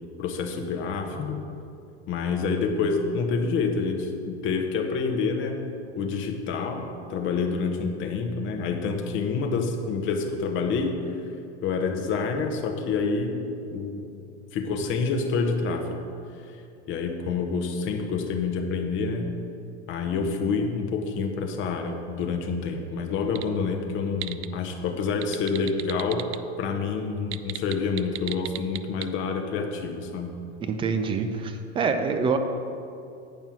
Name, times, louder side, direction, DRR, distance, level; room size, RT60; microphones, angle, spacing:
voice 1, 0.2-1.4 2.1-5.6 5.9-11.0 11.6-13.4 13.7-14.0 14.5-16.0 16.4-16.6 16.9-19.3 19.9-26.3 26.6-30.4, left 4 dB, 35° left, 4 dB, 1.0 m, -27 dB
sound 1, 23.3-23.5 23.9-24.5 25.1-26.4 27.2-29.1, right 15 dB, 85° right, 0.5 m, -33 dB
voice 2, 30.6-32.4, right 5 dB, 15° right, 7 dB, 0.3 m, -26 dB
9.0 x 5.4 x 6.1 m, 2.5 s
supercardioid pair, 130°, 35 cm